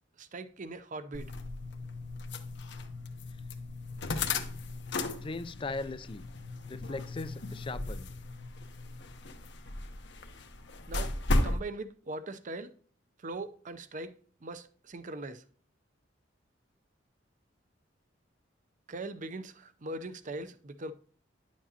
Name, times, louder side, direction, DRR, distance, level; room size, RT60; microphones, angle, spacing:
voice 1, 0.2-1.3 10.9-12.7 13.2-15.4 18.9-20.9, right 2 dB, 45° right, 0.6 m, -41 dB
sound 1, 1.1-11.6, left 2 dB, 65° left, 1.0 m, -35 dB
voice 2, 5.2-6.2 6.7-8.1, left 3 dB, 30° left, 0.4 m, -38 dB
10.0 x 7.3 x 2.8 m
head